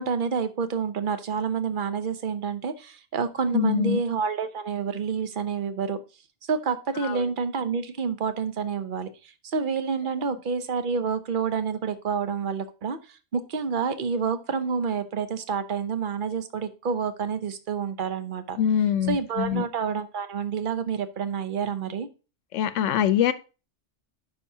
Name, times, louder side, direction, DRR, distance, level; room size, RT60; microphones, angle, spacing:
voice 1, 0.0-6.0 6.5-18.6 19.1-22.1, right 6 dB, 50° right, 0.9 m, -28 dB
voice 2, 3.5-4.0 7.0-7.2 18.6-19.6 22.5-23.3, left 9 dB, 90° left, 1.0 m, -24 dB
10.0 x 5.6 x 2.8 m
omnidirectional pair, 1.2 m